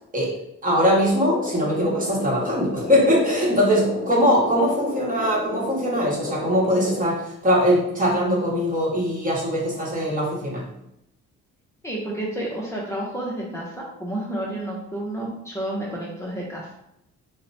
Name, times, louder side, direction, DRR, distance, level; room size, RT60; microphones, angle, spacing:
voice 1, 0.6-10.6, equal, 25° right, -3 dB, 1.1 m, -21 dB
sound 1, 1.1-7.0, left 2 dB, 45° left, 0.8 m, -32 dB
voice 2, 11.8-16.7, right 1 dB, 10° left, -5 dB, 0.7 m, -30 dB
2.9 x 2.1 x 4.0 m, 0.82 s
cardioid pair, 90°, 30 cm